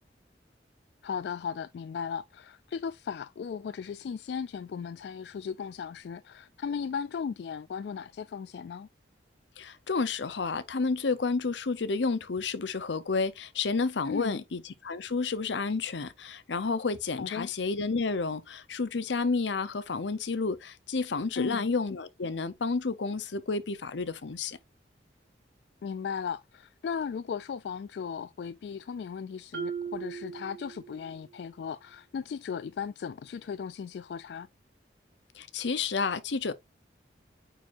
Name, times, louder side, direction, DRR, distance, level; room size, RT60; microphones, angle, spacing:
voice 1, 1.0-8.9 14.1-14.4 17.2-17.5 21.4-21.7 25.8-34.5, left 6 dB, 70° left, 0.3 m, -36 dB
voice 2, 9.6-24.6 35.4-36.5, left 4 dB, 85° left, 0.7 m, -30 dB
Marimba xylophone, 29.5-31.3, right 6 dB, 85° right, 3.3 m, -38 dB
8.9 x 4.7 x 2.5 m
head